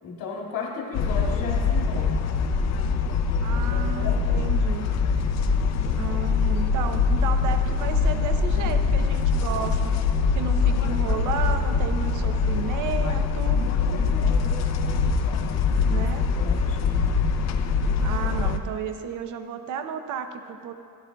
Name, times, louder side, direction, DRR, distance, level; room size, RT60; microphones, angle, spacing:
voice 1, 0.0-2.2 3.5-4.5 13.9-14.4 15.8-17.1, left 4 dB, 65° left, -1 dB, 2.0 m, -35 dB
sound 1, 0.9-18.6, left 5 dB, 45° left, 0.6 m, -23 dB
voice 2, 3.4-4.9 5.9-9.9 10.3-13.6 15.9-16.3 18.0-20.7, right 7 dB, 55° right, 7 dB, 0.7 m, -33 dB
16.0 x 11.0 x 2.3 m, 2.5 s
cardioid pair, 160°, 37 cm